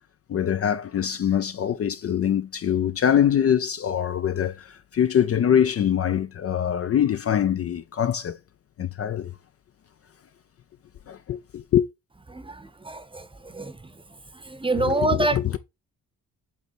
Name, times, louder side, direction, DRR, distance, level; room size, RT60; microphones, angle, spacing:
voice 1, 0.3-8.4 8.8-9.3 11.1-11.9 14.7-15.6, left 9 dB, 40° left, 0.5 m, -24 dB
voice 2, 12.3-13.8 14.5-15.4, right 2 dB, 15° right, 0.8 m, -26 dB
8.2 x 3.2 x 4.1 m
cardioid pair, 95°, 36 cm